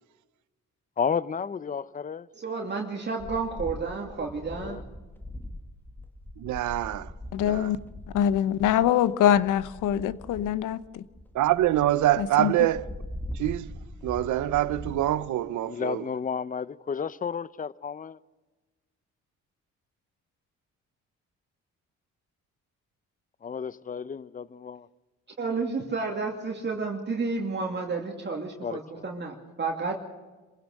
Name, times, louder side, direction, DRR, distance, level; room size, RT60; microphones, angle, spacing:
voice 1, 1.0-2.2 4.5-4.8 15.6-18.2 23.4-24.9 28.6-29.0, left 6 dB, 25° left, 0.7 m, -32 dB
voice 2, 2.4-4.8 25.4-30.0, right 4 dB, 35° right, 2.5 m, -31 dB
sound 1, 3.2-15.3, left 1 dB, 5° left, 1.7 m, -42 dB
voice 3, 6.4-7.1 7.4-7.7 11.3-12.8 13.3-13.7 14.0-16.1, right 14 dB, 75° right, 0.9 m, -25 dB
voice 4, 7.3-7.8 8.1-11.0 12.2-12.5, left 10 dB, 85° left, 0.9 m, -24 dB
27.0 x 16.0 x 6.5 m
cardioid pair, 90°, 30 cm